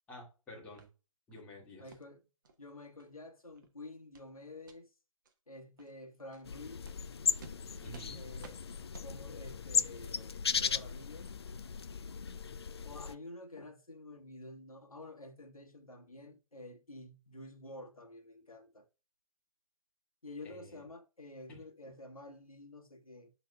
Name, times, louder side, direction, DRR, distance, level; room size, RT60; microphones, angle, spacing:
voice 1, 0.1-0.9 1.3-1.9 7.8-8.2 20.4-20.8 21.5-21.6, left 1 dB, 10° left, 2.1 m, -50 dB
sound 1, 0.8-0.9 1.3-1.5 1.9-2.0 2.4-2.6 3.0-3.1 3.5-3.7 4.1-4.3 4.6-4.8 5.2-5.3 5.8-5.9 6.3-6.4 6.8-7.0 7.4-7.6 7.9-8.1 8.4-8.6 8.9-9.1, right 4 dB, 35° right, 1.0 m, -54 dB
voice 2, 1.8-2.2 2.6-4.9 5.5-6.8 8.1-8.6 9.0-11.3 12.8-18.9 20.2-23.3, left 2 dB, 85° left, 1.7 m, -50 dB
sound 2, 6.4-13.1, left 6 dB, 45° left, 0.4 m, -36 dB
11.0 x 3.9 x 2.3 m
figure-of-eight pair, 145°, 18 cm